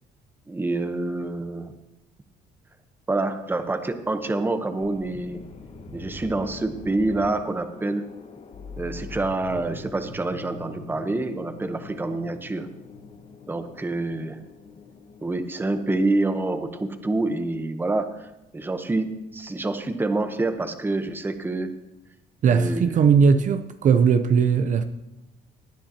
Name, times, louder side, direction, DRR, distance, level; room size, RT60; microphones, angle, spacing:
voice 1, 0.5-1.7 3.1-5.4 5.9-8.1 8.8-12.7 13.5-14.4 15.2-18.3 18.5-21.7 22.5-23.0, right 2 dB, 10° right, 0.9 m, -27 dB
sound 1, 4.8-15.2, left 3 dB, 40° left, 1.3 m, -43 dB
voice 2, 22.4-24.8, right 6 dB, 50° right, 0.6 m, -19 dB
17.5 x 10.0 x 2.9 m
cardioid pair, 110°, 17 cm